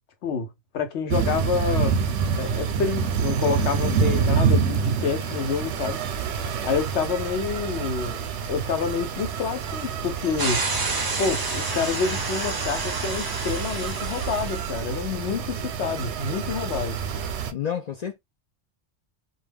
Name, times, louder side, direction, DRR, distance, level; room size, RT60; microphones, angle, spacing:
voice 1, 0.2-2.0 2.4-6.0 6.6-8.2 8.5-10.6 11.2-17.0, left 5 dB, 80° left, 1.0 m, -28 dB
sound 1, 1.1-17.5, right 6 dB, 90° right, 0.9 m, -27 dB
voice 2, 3.9-4.4 17.5-18.2, left 7 dB, 60° left, 0.4 m, -30 dB
sound 2, 10.4-14.8, right 3 dB, 30° right, 0.4 m, -30 dB
2.3 x 2.2 x 3.3 m
omnidirectional pair, 1.1 m